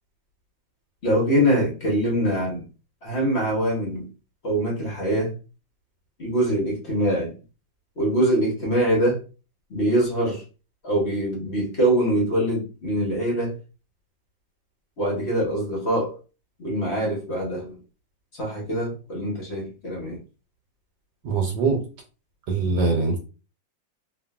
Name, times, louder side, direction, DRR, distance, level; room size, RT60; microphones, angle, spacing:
voice 1, 1.0-2.6 3.0-4.1 4.4-5.3 6.2-7.3 8.0-9.2 9.7-10.4 10.8-13.6 15.0-16.2 16.6-17.8 18.3-20.2, right 1 dB, 50° left, 0.9 m, -23 dB
voice 2, 21.2-21.8 22.5-23.2, right 4 dB, 80° right, 1.3 m, -22 dB
2.7 x 2.6 x 2.2 m
omnidirectional pair, 2.0 m